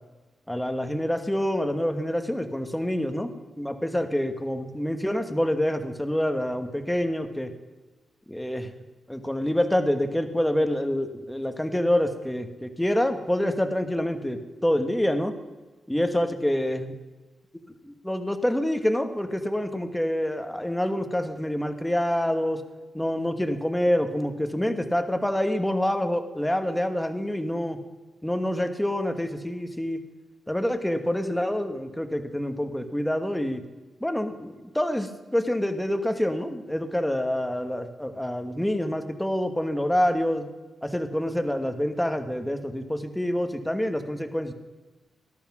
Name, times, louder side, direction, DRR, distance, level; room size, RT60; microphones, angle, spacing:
voice 1, 0.5-7.5 8.3-8.7 9.1-15.3 15.9-16.9 17.8-22.6 22.9-27.8 28.2-30.0 30.5-33.6 34.0-40.5 40.8-44.5, left 1 dB, 5° left, 7 dB, 1.2 m, -27 dB
18.5 x 13.0 x 6.0 m, 1.2 s
wide cardioid pair, 145°, 0 cm